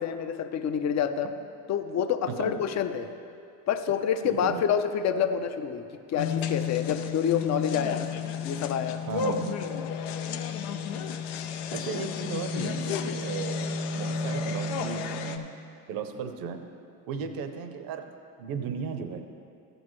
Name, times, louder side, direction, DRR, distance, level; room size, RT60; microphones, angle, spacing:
voice 1, 0.0-1.3 1.7-3.1 3.7-8.1 8.4-9.0, left 8 dB, 45° left, 10 dB, 0.6 m, -28 dB
voice 2, 4.2-4.6 9.1-9.5 11.7-15.5 15.9-16.6 17.1-18.1 18.4-19.2, right 6 dB, 65° right, 7 dB, 0.8 m, -35 dB
sound 1, 6.2-15.4, left 6 dB, 85° left, 0.7 m, -32 dB
13.5 x 7.9 x 3.1 m, 2.5 s
cardioid pair, 115°, 40 cm